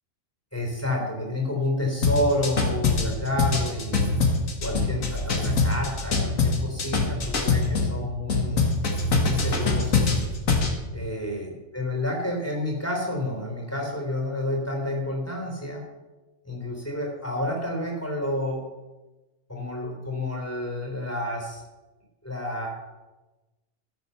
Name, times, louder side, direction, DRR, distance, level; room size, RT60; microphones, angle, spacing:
voice 1, 0.5-4.1 4.6-8.7 9.2-10.0 10.9-15.8 16.4-18.6 19.5-21.6 22.2-22.7, left 1 dB, 10° left, 0 dB, 3.6 m, -29 dB
sound 1, 2.0-7.9 8.3-10.7, left 3 dB, 80° left, 2.1 m, -23 dB
13.0 x 7.9 x 6.9 m, 1.1 s
omnidirectional pair, 1.4 m